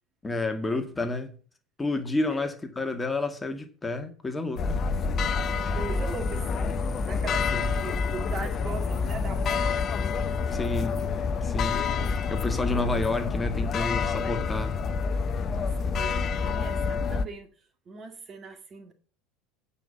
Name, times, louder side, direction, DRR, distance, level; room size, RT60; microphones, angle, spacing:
voice 1, 0.2-1.4 1.8-4.8 7.5-7.7 10.5-11.1 11.4-14.7, left 2 dB, 15° left, 1.9 m, -30 dB
sound 1, 4.6-17.3, left 5 dB, 40° left, 0.8 m, -28 dB
voice 2, 5.5-9.8 15.6-18.9, right 4 dB, 35° right, 2.1 m, -40 dB
9.1 x 5.6 x 7.1 m
hypercardioid pair, 75°, 0 cm